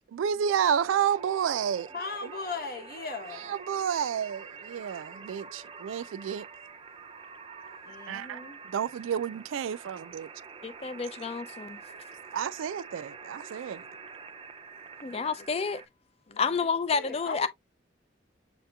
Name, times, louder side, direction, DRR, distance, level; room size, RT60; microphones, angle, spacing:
voice 1, 0.1-1.9 3.5-6.5 8.1-8.4 8.7-10.3 12.3-13.8, right 8 dB, 90° right, 0.3 m, -30 dB
sound 1, 0.6-15.9, right 5 dB, 30° right, 0.5 m, -46 dB
voice 2, 1.9-3.6 7.8-8.6 15.1-15.3 16.3-17.5, left 4 dB, 50° left, 1.0 m, -39 dB
voice 3, 10.6-11.8 15.0-15.8 16.4-17.5, left 5 dB, 30° left, 0.4 m, -30 dB
7.4 x 2.8 x 2.2 m
head